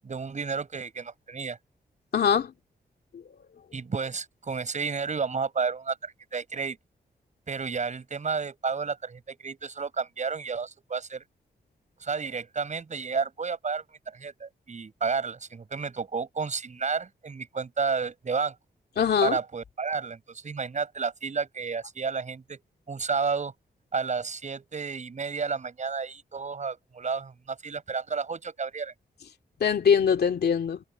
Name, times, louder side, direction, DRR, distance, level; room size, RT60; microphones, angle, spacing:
voice 1, 0.0-1.6 3.7-6.8 7.5-11.2 12.0-18.5 19.2-22.6 22.9-23.5 23.9-28.9, right 5 dB, 45° right, 7.5 m, -31 dB
voice 2, 2.1-2.5 19.0-19.4 29.6-30.8, left 7 dB, 80° left, 2.6 m, -22 dB
wide cardioid pair, 120°, 16 cm